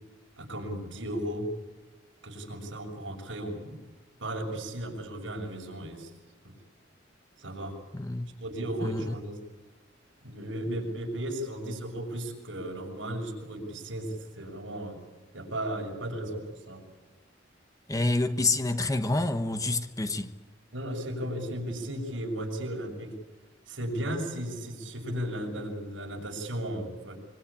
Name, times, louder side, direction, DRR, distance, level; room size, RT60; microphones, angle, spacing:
voice 1, 0.4-1.5 2.2-3.8 4.2-6.1 6.4-6.5 7.4-7.7 8.4-9.4 10.2-15.0 15.3-16.8 20.7-23.1 23.7-27.2, right 1 dB, 75° right, 6.5 m, -35 dB
voice 2, 7.9-8.3 8.8-9.1 17.9-20.3, left 2 dB, 20° left, 1.2 m, -28 dB
25.0 x 24.5 x 8.7 m
head